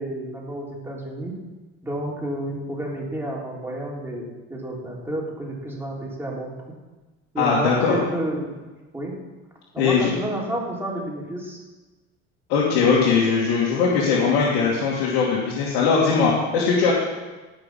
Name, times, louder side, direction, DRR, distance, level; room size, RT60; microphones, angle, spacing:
voice 1, 0.0-1.4 1.8-6.5 7.3-8.5 8.9-9.1 9.7-11.6, right 1 dB, 5° right, -3 dB, 3.5 m, -30 dB
voice 2, 7.4-8.0 9.8-10.1 12.5-16.9, left 5 dB, 85° left, -6 dB, 2.6 m, -20 dB
18.0 x 6.1 x 5.7 m, 1.2 s
cardioid pair, 115°, 32 cm